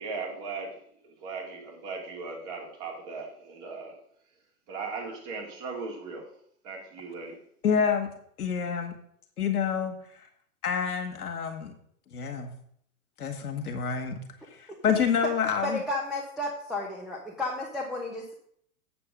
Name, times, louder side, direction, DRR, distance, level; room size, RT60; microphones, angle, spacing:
voice 1, 0.0-4.0 4.7-6.3 6.6-7.4, right 4 dB, 40° right, -1 dB, 3.2 m, -38 dB
voice 2, 7.6-8.1 8.4-8.9 9.4-10.3 10.6-11.7 12.1-12.5 13.2-14.2 14.5-15.8, left 7 dB, 80° left, 4 dB, 1.9 m, -28 dB
voice 3, 15.6-18.3, left 2 dB, ahead, -4 dB, 1.1 m, -32 dB
8.1 x 7.1 x 5.2 m, 0.65 s
hypercardioid pair, 115°, 45 cm